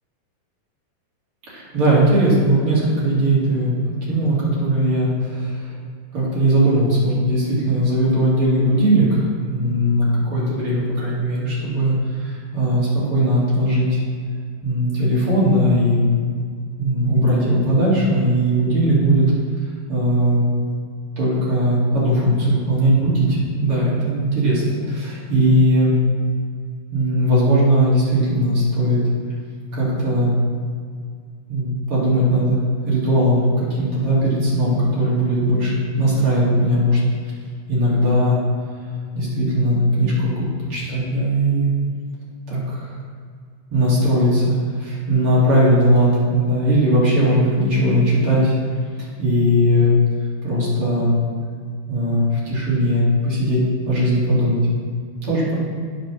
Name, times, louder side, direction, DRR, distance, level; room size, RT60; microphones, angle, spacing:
voice 1, 1.5-3.7 4.1-5.7 6.1-14.0 14.6-16.1 16.8-19.2 19.9-20.4 21.2-25.9 26.9-29.0 29.7-30.3 31.5-32.6 32.9-37.0 37.7-38.4 39.1-41.7 42.5-42.9 43.7-48.6 49.0-50.0 50.4-51.2 51.9-54.6 55.2-55.6, equal, 35° right, -7 dB, 2.9 m, -19 dB
9.2 x 6.7 x 6.2 m, 2.1 s
omnidirectional pair, 4.8 m